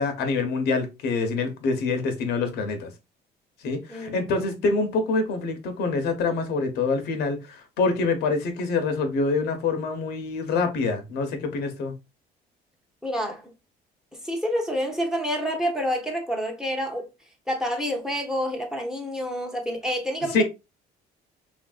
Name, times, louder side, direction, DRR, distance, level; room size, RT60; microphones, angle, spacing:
voice 1, 0.0-2.9 3.6-11.9 20.3-20.4, left 4 dB, 75° left, 0.7 m, -26 dB
voice 2, 3.9-4.3 13.0-13.5 14.2-17.0 17.5-20.4, equal, 5° right, 0.7 m, -28 dB
3.1 x 2.5 x 2.3 m
cardioid pair, 110°, 17 cm